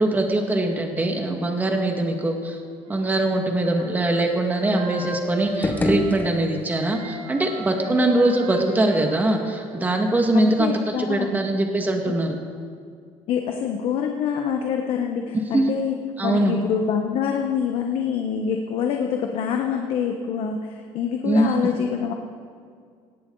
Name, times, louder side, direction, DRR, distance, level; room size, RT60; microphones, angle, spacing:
voice 1, 0.0-2.6 2.9-12.4 15.5-15.6 16.2-16.6 21.3-21.7, right 1 dB, 15° right, 3 dB, 2.0 m, -22 dB
Wind instrument woodwind instrument, 2.8-6.4 6.7-10.5, right 1 dB, 80° right, 3.0 m, -36 dB
sound 1, 5.4-6.9, left 1 dB, 15° left, 1.3 m, -26 dB
voice 2, 10.3-11.3 12.1-12.2 13.3-16.0 16.2-22.1, left 7 dB, 55° left, 3 dB, 1.2 m, -25 dB
18.5 x 16.5 x 4.0 m, 2.2 s
cardioid pair, 140°, 11 cm